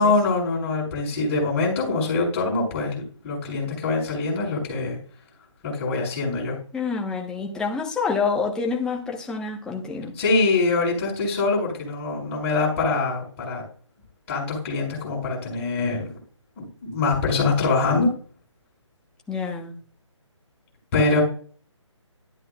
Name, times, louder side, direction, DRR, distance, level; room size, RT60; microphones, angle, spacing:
voice 1, 0.0-5.0 5.6-6.5 10.2-13.6 14.3-16.1 16.6-18.1 20.9-21.2, left 3 dB, 25° left, 6.2 m, -24 dB
voice 2, 6.7-10.1 19.3-19.7, left 5 dB, 5° left, 1.2 m, -27 dB
12.5 x 11.0 x 2.4 m
figure-of-eight pair, 150°, 16 cm